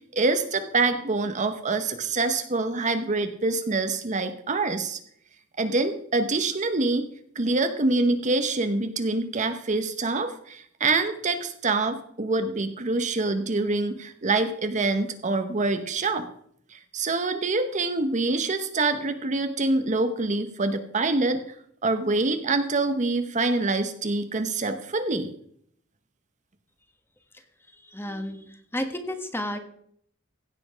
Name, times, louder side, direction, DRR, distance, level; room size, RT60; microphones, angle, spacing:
voice 1, 0.1-5.0 5.6-7.1 7.3-16.3 16.7-21.6 21.8-25.3, right 3 dB, 40° right, 8 dB, 0.8 m, -25 dB
voice 2, 27.8-29.6, left 1 dB, 10° left, 6 dB, 1.4 m, -32 dB
16.0 x 7.7 x 5.0 m, 0.68 s
head